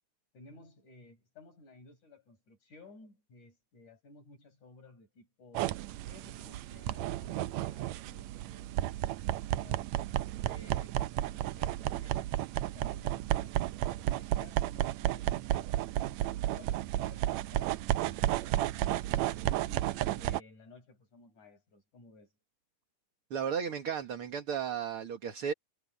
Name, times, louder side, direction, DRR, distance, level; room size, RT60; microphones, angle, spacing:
voice 1, 0.3-5.8 6.0-8.9 9.5-10.0 10.4-12.2 12.6-15.7 16.0-19.1 19.7-22.3, left 3 dB, 60° left, 7.5 m, -56 dB
sound 1, 5.5-20.4, right 14 dB, 80° right, 1.6 m, -32 dB
voice 2, 23.3-25.5, right 7 dB, 45° right, 2.3 m, -34 dB
omnidirectional pair, 3.8 m